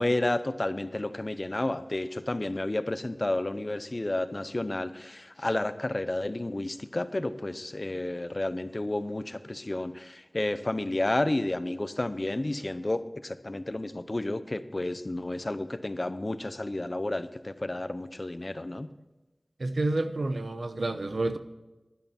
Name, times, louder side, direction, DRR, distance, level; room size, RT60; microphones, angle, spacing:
voice 1, 0.0-18.9, left 2 dB, 45° left, 12 dB, 0.8 m, -31 dB
voice 2, 19.6-21.4, right 2 dB, 85° right, 9 dB, 0.8 m, -29 dB
11.5 x 11.0 x 4.4 m, 1.1 s
wide cardioid pair, 50°, 0 cm